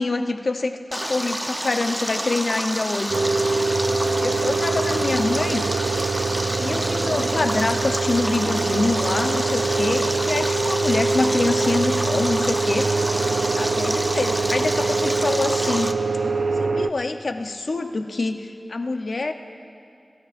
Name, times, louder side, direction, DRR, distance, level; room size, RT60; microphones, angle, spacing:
voice 1, 0.0-3.2 3.6-3.7 4.2-5.6 6.6-12.9 13.6-15.9 16.6-19.3, left 3 dB, 70° left, 6 dB, 0.8 m, -25 dB
Stream, 0.9-15.9, right 1 dB, 15° right, 0.8 m, -28 dB
sound 1, 3.1-16.9, right 3 dB, 65° right, 0.4 m, -24 dB
29.0 x 13.5 x 2.6 m, 2.4 s
cardioid pair, 50°, 0 cm